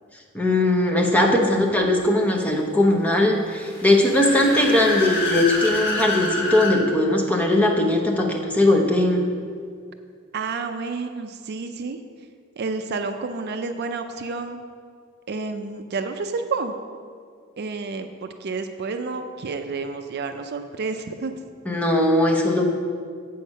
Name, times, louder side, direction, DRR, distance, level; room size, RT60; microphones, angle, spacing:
voice 1, 0.3-9.2 21.7-22.6, left 1 dB, 5° left, 0 dB, 0.9 m, -19 dB
Car / Accelerating revving vroom, 3.5-6.8, left 2 dB, 55° left, 2.4 m, -27 dB
voice 2, 10.3-12.0 12.6-14.6 15.3-16.7 17.6-21.3, right 4 dB, 50° right, 7 dB, 0.4 m, -30 dB
8.4 x 6.5 x 5.4 m, 2.1 s
head